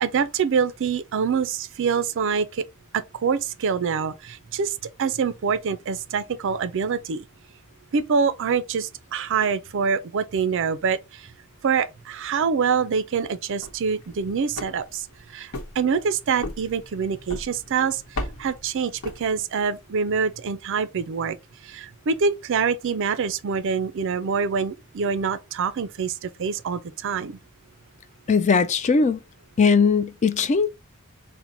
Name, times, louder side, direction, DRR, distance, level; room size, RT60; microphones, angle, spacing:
voice 1, 0.0-2.6 2.9-7.3 7.9-11.3 11.6-21.4 21.6-27.4, right 6 dB, 60° right, 0.4 m, -25 dB
sound 1, 13.4-19.7, left 1 dB, 70° left, 0.9 m, -38 dB
voice 2, 28.3-29.2 29.6-30.7, left 5 dB, 30° left, 0.3 m, -19 dB
4.4 x 2.1 x 3.9 m
head